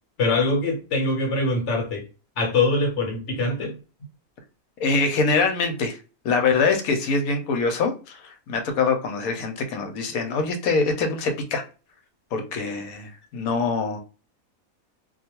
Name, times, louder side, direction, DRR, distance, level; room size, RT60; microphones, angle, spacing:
voice 1, 0.2-2.0 2.4-3.8, left 2 dB, 60° left, 1.0 m, -23 dB
voice 2, 4.8-6.0 6.2-11.6 12.3-14.0, left 4 dB, 80° left, 1.1 m, -24 dB
2.4 x 2.3 x 2.8 m
omnidirectional pair, 1.5 m